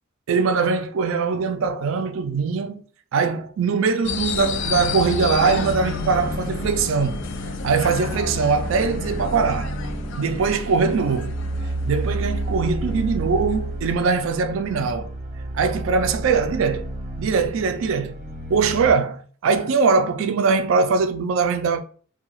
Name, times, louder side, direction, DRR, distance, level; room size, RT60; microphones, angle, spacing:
voice 1, 0.3-2.8 3.1-7.2 7.6-9.7 10.2-11.4 11.9-15.1 15.5-16.9 17.2-18.2 18.5-21.8, right 5 dB, 70° right, 0.4 m, -21 dB
sound 1, 4.0-14.0, left 4 dB, 60° left, 0.3 m, -32 dB
sound 2, 4.7-18.9, right 1 dB, 35° right, 0.7 m, -31 dB
2.7 x 2.2 x 3.0 m
head